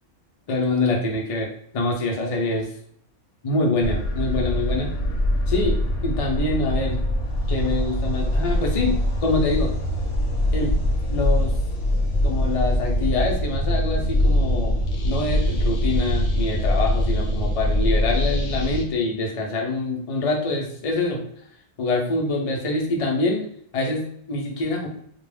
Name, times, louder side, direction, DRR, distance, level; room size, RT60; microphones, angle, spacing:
voice 1, 0.5-1.5 1.7-2.7 3.4-4.9 5.5-7.0 7.5-9.7 10.5-10.7 11.1-11.6 12.2-14.8 15.0-21.2 21.8-23.4 23.7-24.9, left 2 dB, 50° left, 0 dB, 0.4 m, -25 dB
sound 1, 3.8-18.8, equal, 70° left, 0.9 m, -23 dB
2.3 x 2.1 x 3.3 m, 0.66 s
omnidirectional pair, 1.3 m